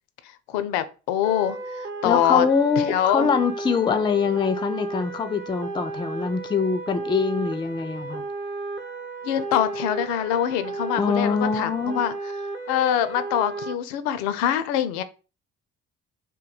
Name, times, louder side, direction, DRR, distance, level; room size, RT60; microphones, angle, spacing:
voice 1, 0.5-2.5 2.8-3.3 9.2-12.1 12.7-15.0, left 10 dB, 65° left, 0.5 m, -24 dB
sound 1, 1.2-13.7, right 3 dB, 30° right, 0.7 m, -34 dB
voice 2, 2.0-8.2 11.0-12.0, left 5 dB, 15° left, 0.4 m, -24 dB
2.6 x 2.2 x 3.9 m
figure-of-eight pair, 45°, 39 cm